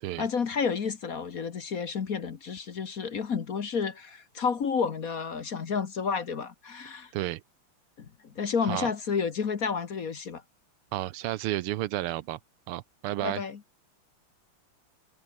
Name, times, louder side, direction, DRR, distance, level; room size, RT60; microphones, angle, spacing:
voice 1, 0.2-7.1 8.0-8.1 8.3-10.4 13.2-13.6, left 6 dB, 45° left, 1.6 m, -30 dB
voice 2, 10.9-12.4 12.7-13.4, right 15 dB, 80° right, 1.7 m, -31 dB
omnidirectional pair, 2.4 m